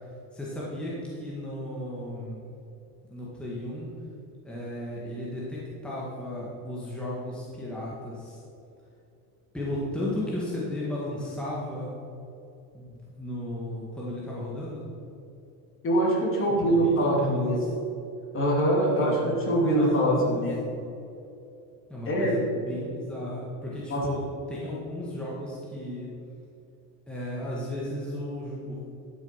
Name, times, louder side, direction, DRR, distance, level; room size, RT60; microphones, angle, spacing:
voice 1, 0.3-2.4 3.1-3.9 4.4-8.4 9.5-11.9 12.7-14.8 16.6-17.7 18.8-19.3 19.6-20.4 21.9-24.2 24.5-26.1 27.1-28.8, left 1 dB, ahead, -6 dB, 1.7 m, -34 dB
voice 2, 15.8-17.6 18.3-20.6 22.1-22.3 23.9-24.1, right 1 dB, 30° left, -2 dB, 2.5 m, -23 dB
12.0 x 6.5 x 5.7 m, 2.7 s
cardioid pair, 150°, 42 cm